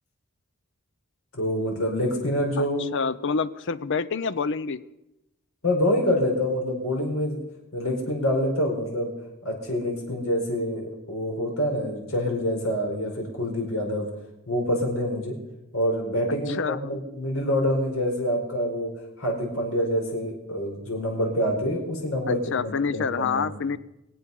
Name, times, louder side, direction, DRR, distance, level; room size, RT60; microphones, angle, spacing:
voice 1, 1.3-2.8 5.6-7.4 7.7-9.1 9.4-14.1 14.5-15.3 15.7-18.9 19.2-23.4, equal, 80° left, 0 dB, 4.6 m, -26 dB
voice 2, 2.6-4.8 16.5-16.9 22.3-23.8, left 5 dB, 60° left, 16 dB, 0.6 m, -27 dB
23.5 x 8.6 x 5.4 m, 0.92 s
head